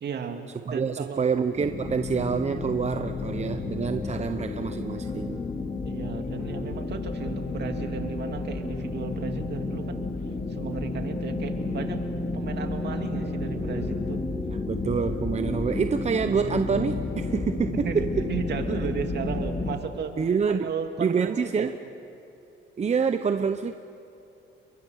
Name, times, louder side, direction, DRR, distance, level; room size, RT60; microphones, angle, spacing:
voice 1, 0.0-1.3 5.8-10.0 10.5-12.0 12.3-14.2 17.7-20.2 20.5-21.7, right 6 dB, 60° right, 5 dB, 2.5 m, -34 dB
voice 2, 0.7-5.4 14.7-18.1 20.2-20.7 21.0-21.7 22.8-23.8, right 6 dB, 35° right, 9 dB, 0.9 m, -27 dB
sound 1, 1.6-19.8, left 3 dB, 40° left, 3.3 m, -31 dB
sound 2, 2.1-19.9, equal, 5° right, 7.0 m, -47 dB
30.0 x 23.0 x 6.5 m, 2.7 s
cardioid pair, 90°, 20 cm